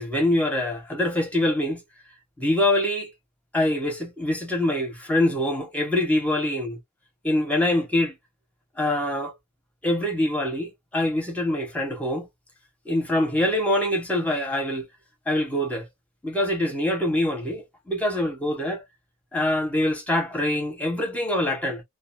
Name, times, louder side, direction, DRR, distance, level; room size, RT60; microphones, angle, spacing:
voice 1, 0.0-1.8 2.4-3.1 3.5-6.8 7.2-8.1 8.8-9.3 9.8-12.3 12.8-14.9 15.3-15.9 16.2-18.8 19.3-21.8, left 1 dB, 5° left, 1.0 m, -24 dB
2.5 x 2.5 x 2.5 m
head